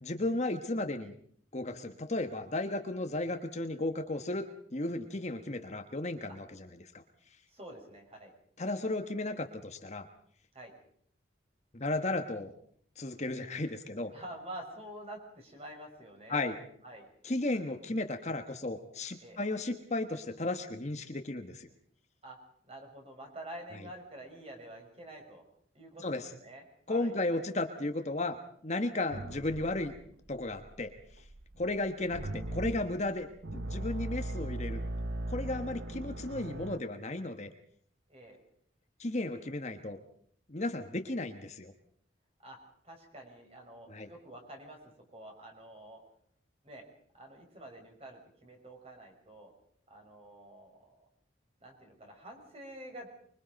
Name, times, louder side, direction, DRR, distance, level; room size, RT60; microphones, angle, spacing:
voice 1, 0.0-1.1 1.5-4.5 4.7-7.0 8.6-10.1 11.7-12.5 13.0-14.1 16.3-16.6 17.2-21.7 26.0-26.3 26.9-29.9 30.3-30.9 31.6-34.8 35.3-37.5 39.0-40.0 40.5-41.7 43.9-44.1, left 2 dB, 35° left, 6 dB, 1.3 m, -34 dB
voice 2, 7.5-8.3 10.5-10.7 14.1-16.4 16.8-17.1 19.2-19.4 22.2-22.4 22.7-25.4 25.7-27.2 38.1-38.4 42.4-42.6 42.8-44.8 45.1-46.0 46.6-46.9 47.1-49.5 49.9-51.0 51.6-53.1, right 1 dB, 30° right, 2 dB, 5.7 m, -48 dB
sound 1, 29.1-36.8, right 1 dB, 75° right, 1.2 m, -39 dB
25.0 x 23.5 x 5.3 m, 0.62 s
head